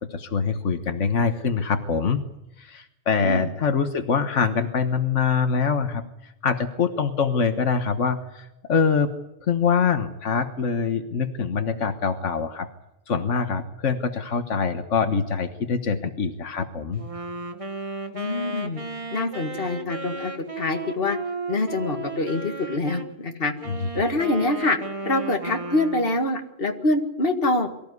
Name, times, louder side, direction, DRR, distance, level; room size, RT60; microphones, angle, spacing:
voice 1, 0.0-2.2 2.6-9.1 9.4-12.7 13.1-17.0 23.7-23.9, left 5 dB, 90° left, 8 dB, 1.7 m, -24 dB
voice 2, 3.2-3.5 18.1-18.8 19.1-21.2 21.5-23.5 23.9-24.8 25.0-27.7, left 2 dB, 50° left, 4 dB, 2.2 m, -25 dB
Wind instrument woodwind instrument, 16.9-23.1 23.6-26.2, right 3 dB, 30° right, 1.9 m, -34 dB
23.5 x 14.5 x 9.6 m, 0.87 s
omnidirectional pair, 1.2 m